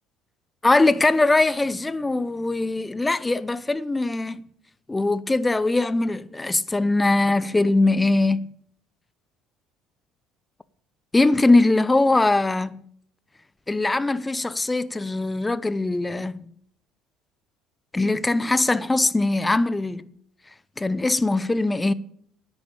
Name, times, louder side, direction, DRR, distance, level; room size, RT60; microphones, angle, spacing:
voice 1, 0.6-4.4 4.9-8.5 11.1-12.8 13.7-16.4 17.9-20.1 20.8-21.9, left 2 dB, 15° left, 0.6 m, -21 dB
9.8 x 9.0 x 7.1 m
hypercardioid pair, 70°, 0 cm